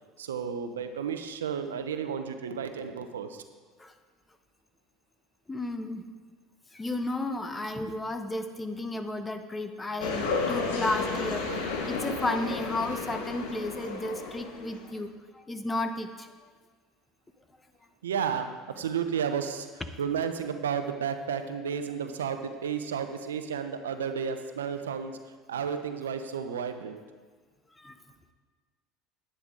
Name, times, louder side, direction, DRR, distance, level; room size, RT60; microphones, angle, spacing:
voice 1, 0.2-3.4 11.4-11.7 18.0-18.5 18.8-19.7 20.0-25.2 25.5-27.0, right 7 dB, 90° right, 8 dB, 0.7 m, -32 dB
voice 2, 5.5-6.0 6.7-16.3 27.8-28.0, left 2 dB, 15° left, 8 dB, 0.9 m, -33 dB
sound 1, 10.0-14.9, left 4 dB, 75° left, 1.4 m, -32 dB
10.5 x 9.8 x 3.8 m, 1.5 s
hypercardioid pair, 75°, 0 cm